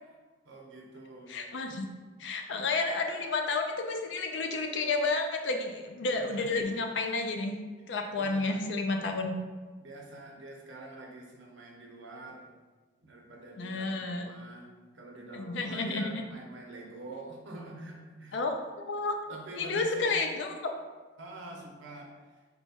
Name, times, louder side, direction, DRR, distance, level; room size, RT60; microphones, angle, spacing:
voice 1, 0.4-1.4 1.6-1.8 6.1-6.6 8.1-8.6 9.8-12.5 13.0-18.4 19.3-20.1 21.2-22.1, right 2 dB, 85° right, 0 dB, 0.8 m, -46 dB
voice 2, 1.3-1.8 2.2-7.6 7.9-9.3 13.5-14.3 15.3-16.1 18.3-19.2 19.5-20.7, left 3 dB, 70° left, 4 dB, 0.5 m, -31 dB
4.2 x 2.3 x 4.2 m, 1.4 s
head